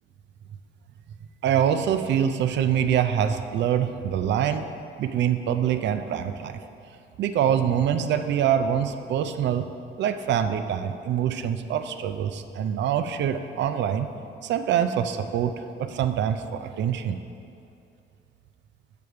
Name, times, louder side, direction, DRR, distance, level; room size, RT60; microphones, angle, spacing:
voice 1, 1.4-4.7 5.0-6.6 7.2-9.7 10.0-14.1 14.4-17.2, right 9 dB, 65° right, 9 dB, 0.4 m, -25 dB
6.8 x 5.0 x 4.5 m, 2.6 s
cardioid pair, 90°, 20 cm